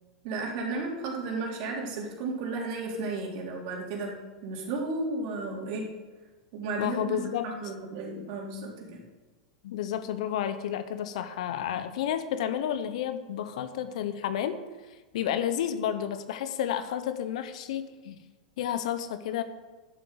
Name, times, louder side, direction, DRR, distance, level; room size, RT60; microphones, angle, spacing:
voice 1, 0.2-4.1 4.4-5.9 6.5-9.1, right 3 dB, 55° right, -1 dB, 3.8 m, -34 dB
voice 2, 6.8-7.5 9.6-14.6 15.1-18.2 18.6-19.4, left 10 dB, 70° left, 11 dB, 1.0 m, -31 dB
11.5 x 7.8 x 6.7 m, 1.2 s
hypercardioid pair, 105°, 4 cm